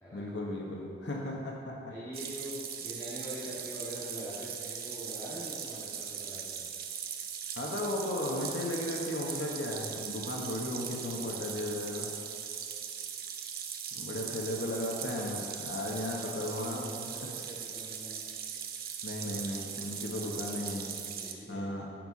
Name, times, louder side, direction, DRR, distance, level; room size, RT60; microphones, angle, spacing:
voice 1, 0.1-2.0 7.6-12.1 13.9-17.3 19.0-20.9 21.5-21.9, left 1 dB, 90° left, -1 dB, 1.1 m, -35 dB
voice 2, 1.9-6.7 16.1-16.4 16.7-18.2 20.1-21.6, equal, 15° left, -13 dB, 1.9 m, -44 dB
sound 1, 2.1-21.3, right 8 dB, 55° right, 0.7 m, -40 dB
9.0 x 5.6 x 5.3 m, 2.5 s
head